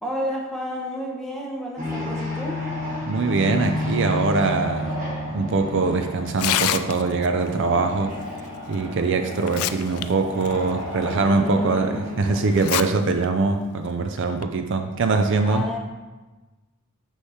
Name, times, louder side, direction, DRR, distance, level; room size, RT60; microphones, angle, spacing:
voice 1, 0.0-2.6 11.2-12.5 15.5-15.8, equal, ahead, -2 dB, 1.0 m, -31 dB
sound 1, 1.8-13.9, left 1 dB, 35° right, 1.3 m, -32 dB
voice 2, 3.1-5.0 5.3-8.2 8.7-15.7, right 3 dB, 60° right, 6 dB, 0.4 m, -22 dB
Tearing, 6.3-7.3 8.7-8.8 9.3-10.0 10.4-10.5 11.2-11.3 12.5-12.8 13.2-13.3 14.2-14.4, left 12 dB, 80° left, 0.3 m, -25 dB
6.6 x 3.2 x 5.6 m, 1.2 s
head